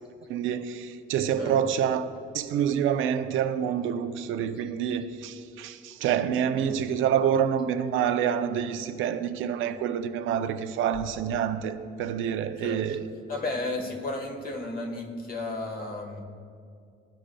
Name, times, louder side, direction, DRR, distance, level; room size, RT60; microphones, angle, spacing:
voice 1, 0.3-2.1 2.3-13.0, right 8 dB, 85° right, 0.5 m, -27 dB
voice 2, 13.3-16.2, left 2 dB, 45° left, 1.3 m, -33 dB
15.0 x 5.0 x 2.2 m
cardioid pair, 90°, 20 cm